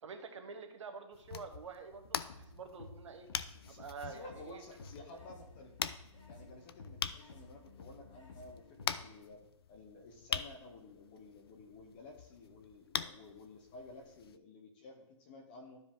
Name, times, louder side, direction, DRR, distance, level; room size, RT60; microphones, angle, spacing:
voice 1, 0.0-3.3 3.7-4.6 5.0-5.1, right 5 dB, 60° right, 6 dB, 1.3 m, -48 dB
sound 1, 1.1-14.4, left 8 dB, 45° left, 0.4 m, -44 dB
sound 2, 1.9-9.2, left 3 dB, 65° left, 1.8 m, -54 dB
voice 2, 3.6-5.7 6.3-15.8, left 2 dB, 20° left, 3 dB, 0.7 m, -53 dB
12.0 x 5.0 x 3.6 m, 0.80 s
hypercardioid pair, 170°, 17 cm